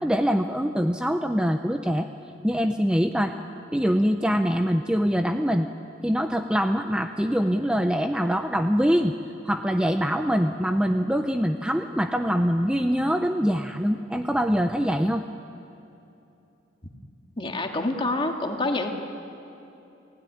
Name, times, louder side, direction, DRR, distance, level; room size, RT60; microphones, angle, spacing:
voice 1, 0.0-2.1 2.4-3.4 3.7-5.7 6.0-9.1 9.4-15.2, equal, 5° right, 6 dB, 0.7 m, -24 dB
voice 2, 17.4-19.0, left 2 dB, 30° left, 3 dB, 2.1 m, -27 dB
29.0 x 16.5 x 9.9 m, 2.8 s
head